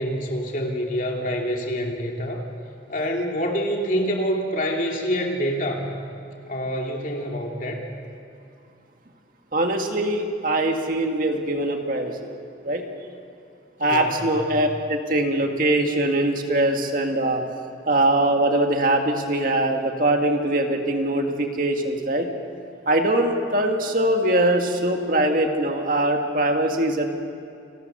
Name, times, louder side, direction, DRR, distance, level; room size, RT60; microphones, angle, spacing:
voice 1, 0.0-2.4 2.9-5.9 6.4-7.9 13.8-14.3, equal, 45° left, 0 dB, 3.0 m, -26 dB
voice 2, 9.5-12.2 12.6-12.8 13.8-17.4 17.9-22.3 22.9-27.1, right 1 dB, 50° right, 3 dB, 2.0 m, -22 dB
29.5 x 19.5 x 6.8 m, 2.5 s
head